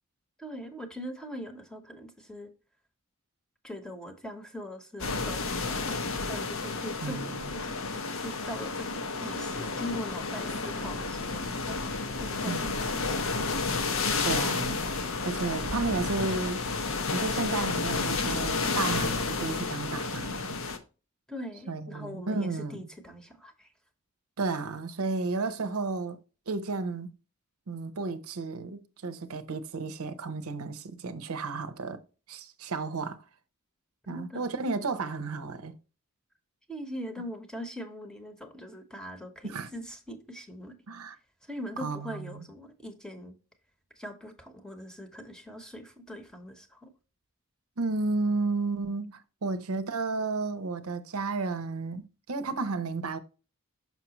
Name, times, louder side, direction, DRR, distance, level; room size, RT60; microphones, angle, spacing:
voice 1, 0.4-2.5 3.6-7.8 8.1-13.2 15.2-15.3 21.3-23.7 34.1-34.6 36.7-40.8 41.4-43.3 44.0-46.9, equal, 5° left, 1.0 m, -42 dB
sound 1, 5.0-20.8, left 4 dB, 65° left, 0.8 m, -31 dB
voice 2, 7.0-7.4 12.5-12.7 14.2-14.9 15.2-16.8 17.1-20.6 21.7-22.8 24.4-26.2 26.5-27.1 27.7-32.0 32.3-33.2 34.1-35.7 39.4-39.7 40.9-41.2 41.8-42.5 47.8-53.2, right 3 dB, 75° right, 0.7 m, -32 dB
5.9 x 5.7 x 2.9 m
head